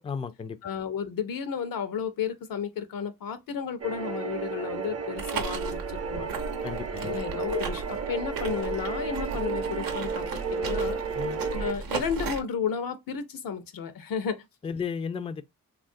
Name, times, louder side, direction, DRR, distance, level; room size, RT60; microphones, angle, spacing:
voice 1, 0.0-0.6 6.6-7.2 11.2-11.4 14.6-15.4, left 6 dB, 20° left, 0.3 m, -34 dB
voice 2, 0.6-6.3 7.0-11.0 11.5-14.4, left 7 dB, 75° left, 0.6 m, -32 dB
sound 1, 3.8-11.7, right 5 dB, 45° right, 0.7 m, -33 dB
sound 2, 5.2-12.4, right 5 dB, 85° right, 0.7 m, -36 dB
3.1 x 2.4 x 2.5 m
cardioid pair, 55°, 34 cm